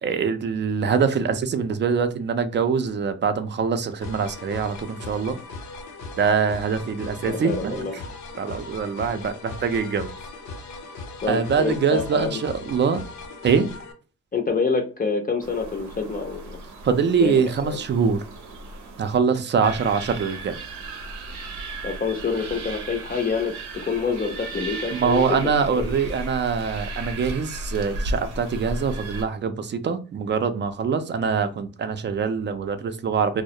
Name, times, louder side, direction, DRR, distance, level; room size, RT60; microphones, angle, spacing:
voice 1, 0.0-5.4 6.2-7.9 8.4-10.1 11.3-13.0 13.4-13.7 16.8-18.2 19.0-20.6 24.9-33.4, right 6 dB, 40° right, 9 dB, 0.4 m, -24 dB
sound 1, 4.0-13.9, left 3 dB, 65° left, 0.7 m, -38 dB
voice 2, 7.2-7.9 11.2-12.4 14.3-16.6 17.2-17.8 21.8-23.5 23.9-25.5 25.8-25.9, left 5 dB, 30° left, 2 dB, 0.5 m, -27 dB
Foxes crying at night in Brockley, 15.4-19.2 19.6-29.2, right 2 dB, 90° right, 0.6 m, -35 dB
2.3 x 2.0 x 2.7 m, 0.36 s
cardioid pair, 90°, 30 cm